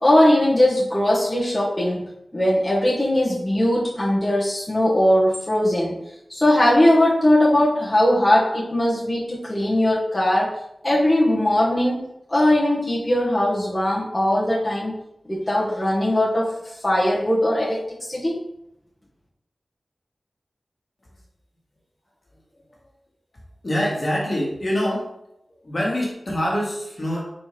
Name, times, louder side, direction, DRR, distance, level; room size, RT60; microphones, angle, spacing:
voice 1, 0.0-2.0 2.3-5.9 6.3-10.5 10.8-14.9 15.3-16.5 16.8-17.8 18.1-18.3, left 1 dB, 20° left, -7 dB, 1.2 m, -19 dB
voice 2, 23.6-25.1 25.6-27.2, equal, 45° left, -4 dB, 1.6 m, -24 dB
4.3 x 3.4 x 3.3 m, 0.81 s
cardioid pair, 50°, 0 cm